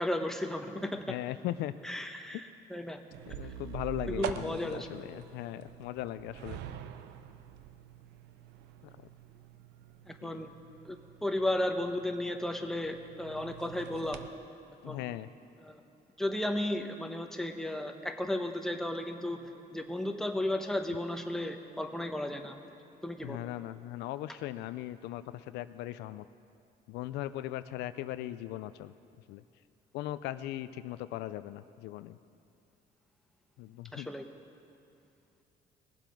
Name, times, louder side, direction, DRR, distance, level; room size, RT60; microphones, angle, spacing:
voice 1, 0.0-1.2 1.8-3.0 4.1-4.9 10.1-10.5 10.8-14.2 14.8-15.1 15.6-15.8 16.2-19.4 19.7-22.6 23.0-23.4 33.9-34.3, left 1 dB, 5° left, 5 dB, 0.9 m, -34 dB
voice 2, 0.9-1.7 3.3-6.6 9.0-9.1 10.2-10.4 14.8-15.3 19.3-19.4 23.2-26.2 26.9-28.9 29.3-29.4 29.9-32.2 33.6-34.1, left 14 dB, 85° left, 14 dB, 0.4 m, -39 dB
sound 1, 3.1-14.3, right 10 dB, 85° right, 0.6 m, -45 dB
19.0 x 7.5 x 5.2 m, 2.6 s
cardioid pair, 110°, 17 cm